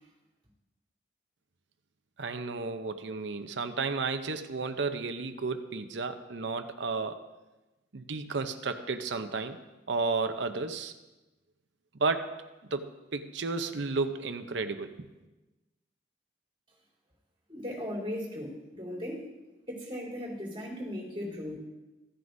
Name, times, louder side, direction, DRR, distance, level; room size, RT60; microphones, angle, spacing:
voice 1, 2.2-7.2 7.9-9.6 9.9-10.9 12.0-12.3 12.7-15.1, right 4 dB, 80° right, 9 dB, 0.7 m, -32 dB
voice 2, 17.5-19.3 19.7-21.6, left 1 dB, 30° right, -6 dB, 3.5 m, -37 dB
15.5 x 9.5 x 2.7 m, 1.1 s
head